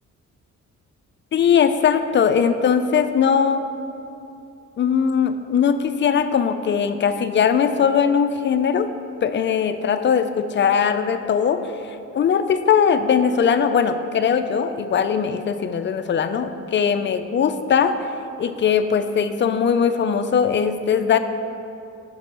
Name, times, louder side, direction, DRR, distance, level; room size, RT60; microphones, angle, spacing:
voice 1, 1.3-3.6 4.8-8.9 9.2-11.6 11.9-18.0 18.4-21.2, left 7 dB, 40° left, 9 dB, 0.4 m, -20 dB
5.9 x 5.3 x 5.3 m, 2.7 s
cardioid pair, 90°, 30 cm